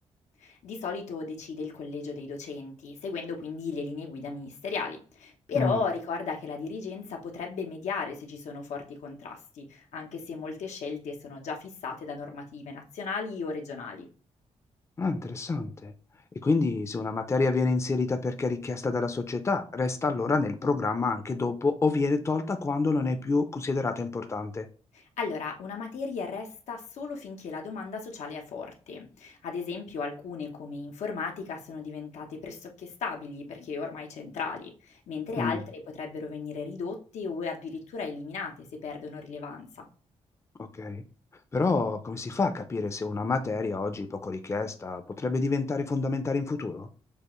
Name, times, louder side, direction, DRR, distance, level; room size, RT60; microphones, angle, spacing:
voice 1, 0.4-14.1 24.9-39.9, left 4 dB, 85° left, 2 dB, 0.9 m, -36 dB
voice 2, 15.0-15.9 16.4-24.7 35.4-35.6 40.6-41.0 41.5-46.9, left 3 dB, 25° left, 7 dB, 0.5 m, -28 dB
6.7 x 2.5 x 3.1 m, 0.40 s
cardioid pair, 100°, 12 cm